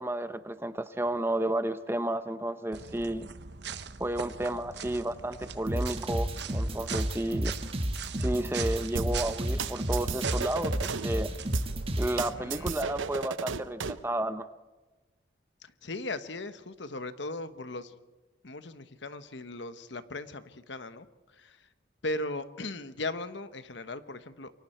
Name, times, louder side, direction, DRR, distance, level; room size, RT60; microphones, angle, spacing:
voice 1, 0.0-3.3 4.0-7.6 8.2-11.3 12.0-14.5, right 1 dB, 10° right, 11 dB, 0.8 m, -32 dB
sound 1, 2.7-13.2, right 6 dB, 60° right, 1.0 m, -42 dB
sound 2, 5.7-12.2, equal, 30° right, 1.6 m, -31 dB
sound 3, 9.0-11.1 11.5-14.0, right 5 dB, 85° right, 0.8 m, -34 dB
voice 2, 12.2-12.7 15.6-17.9 18.4-21.7 22.0-24.5, left 2 dB, 70° left, 11 dB, 1.2 m, -38 dB
28.5 x 23.5 x 4.5 m, 1.2 s
head